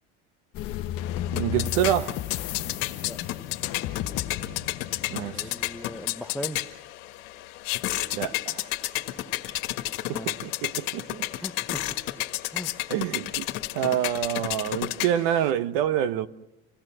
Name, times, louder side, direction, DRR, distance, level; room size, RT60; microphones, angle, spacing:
sound 1, 0.5-6.1, left 11 dB, 50° left, 1.0 m, -34 dB
sound 2, 1.0-15.5, left 16 dB, 75° left, 1.7 m, -32 dB
voice 1, 1.3-2.2 5.1-5.5 8.1-8.7 10.1-11.2 12.9-13.5 13.7-16.3, right 11 dB, 80° right, 1.2 m, -27 dB
voice 2, 5.3-6.6 10.1-10.3 11.4-11.8 12.5-12.7, left 1 dB, ahead, 0.7 m, -38 dB
26.5 x 17.5 x 6.2 m
cardioid pair, 140°, 29 cm